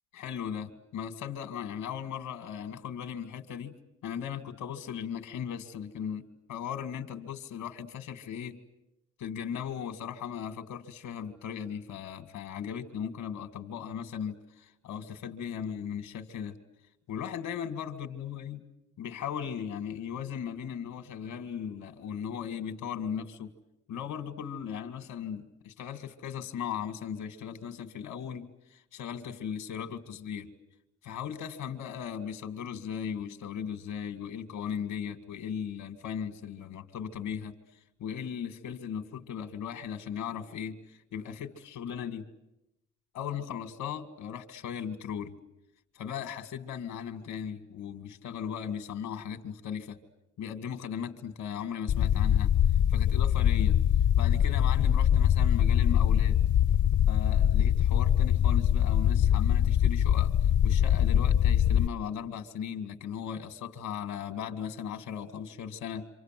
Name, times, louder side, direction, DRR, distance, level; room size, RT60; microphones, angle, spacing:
voice 1, 0.1-8.6 9.2-16.6 17.1-18.6 19.0-23.5 23.9-30.5 31.0-37.5 38.0-42.3 43.1-45.4 46.0-50.0 50.4-52.5 52.9-53.8 54.2-56.4 57.1-66.1, left 8 dB, 85° left, 2.3 m, -37 dB
sound 1, 51.9-61.9, left 10 dB, 65° left, 0.9 m, -23 dB
27.5 x 26.5 x 7.7 m
cardioid pair, 90°, 30 cm